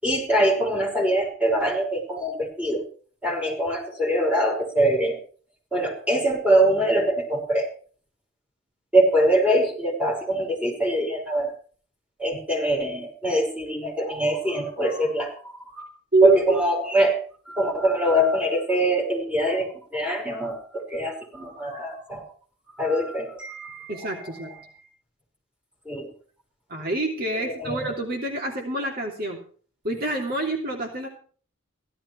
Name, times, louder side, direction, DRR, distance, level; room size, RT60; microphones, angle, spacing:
voice 1, 0.0-2.8 3.2-5.2 5.7-7.7 8.9-11.5 12.2-15.9 16.2-17.2 17.5-22.3 22.8-24.6 25.9-26.1 27.4-28.0, right 1 dB, 5° right, -2 dB, 5.6 m, -23 dB
voice 2, 16.1-16.6 23.9-24.5 26.7-29.4 29.8-31.1, right 1 dB, 50° right, 1 dB, 3.1 m, -25 dB
16.0 x 13.0 x 4.7 m, 0.44 s
head